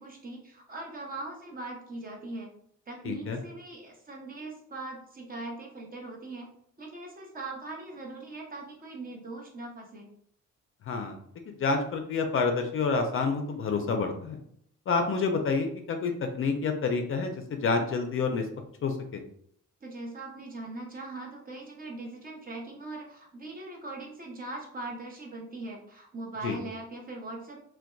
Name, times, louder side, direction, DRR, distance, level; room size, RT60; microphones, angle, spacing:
voice 1, 0.0-2.5 2.9-6.5 6.8-10.1 19.8-27.6, right 2 dB, 30° right, 0 dB, 0.7 m, -40 dB
voice 2, 3.0-3.4 10.9-11.2 11.5-14.4 14.9-18.5 18.8-19.2 26.4-26.6, left 4 dB, 45° left, 5 dB, 0.4 m, -28 dB
2.6 x 2.1 x 2.2 m, 0.67 s
cardioid pair, 90°, 30 cm